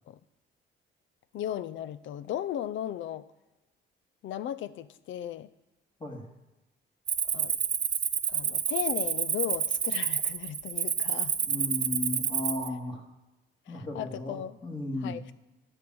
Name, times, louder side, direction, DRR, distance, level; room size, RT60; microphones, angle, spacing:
voice 1, 1.3-3.2 4.2-5.5 7.3-7.6 8.3-11.3 13.7-14.6 15.0-15.2, left 11 dB, 75° left, 16 dB, 0.5 m, -36 dB
Cricket, 7.1-12.7, right 7 dB, 35° right, 0.5 m, -29 dB
voice 2, 11.4-13.0 13.7-15.1, left 2 dB, 25° left, 0 dB, 2.4 m, -35 dB
11.5 x 4.5 x 7.7 m, 1.0 s
cardioid pair, 90°, 20 cm